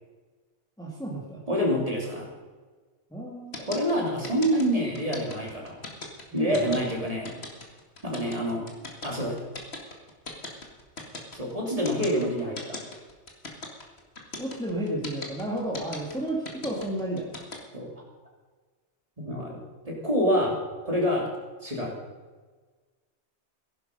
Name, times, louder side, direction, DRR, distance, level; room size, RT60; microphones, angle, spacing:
voice 1, 0.8-1.4 3.1-3.6 6.3-6.9 14.4-17.4, right 1 dB, 5° left, -2 dB, 2.1 m, -32 dB
voice 2, 1.5-2.3 3.7-5.7 6.3-7.3 8.0-8.6 9.0-9.4 11.3-12.8 17.7-17.9 19.2-19.6 19.9-20.6 20.8-21.3 21.6-21.9, equal, 30° right, -2 dB, 3.5 m, -27 dB
sound 1, 3.5-17.6, left 3 dB, 60° left, 2.4 m, -38 dB
16.0 x 11.5 x 5.4 m, 1.4 s
omnidirectional pair, 1.2 m